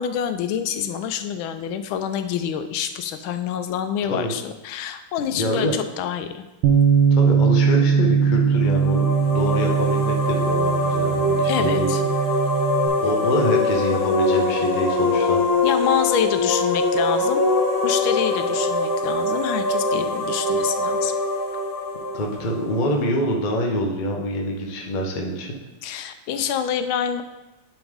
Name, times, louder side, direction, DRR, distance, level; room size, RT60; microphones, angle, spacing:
voice 1, 0.0-6.5 11.5-12.0 15.6-17.5 17.8-21.1 25.8-27.2, left 8 dB, 85° left, 8 dB, 1.4 m, -27 dB
voice 2, 5.3-5.7 7.1-11.9 13.0-15.4 22.1-25.6, equal, 60° left, 0 dB, 0.4 m, -25 dB
Bass guitar, 6.6-12.9, right 6 dB, 75° right, 1.3 m, -20 dB
sound 1, 8.6-23.3, left 2 dB, 10° left, 1.2 m, -23 dB
9.9 x 3.4 x 3.5 m, 1.1 s
omnidirectional pair, 2.2 m